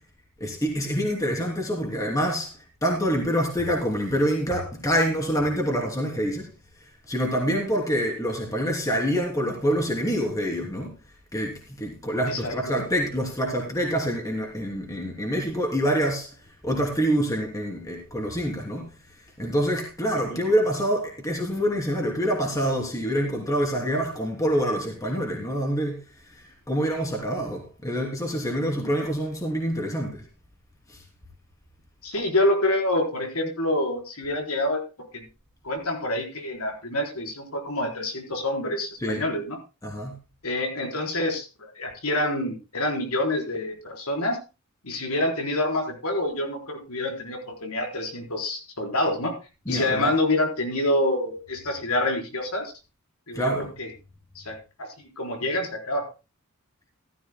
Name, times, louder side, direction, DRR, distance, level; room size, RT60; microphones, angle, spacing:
voice 1, 0.4-2.5 2.8-6.5 7.1-10.9 11.3-16.3 16.6-18.8 19.4-26.0 26.7-30.2 39.0-39.2 39.8-40.1 49.7-50.1 53.3-53.7, equal, 15° left, 3.0 m, -26 dB
voice 2, 32.0-34.8 35.1-35.2 35.6-39.6 40.4-44.4 44.8-49.3 49.7-52.7 53.3-53.9 54.4-54.9 55.2-56.0, left 1 dB, 80° left, 4.2 m, -27 dB
14.5 x 14.5 x 2.2 m
head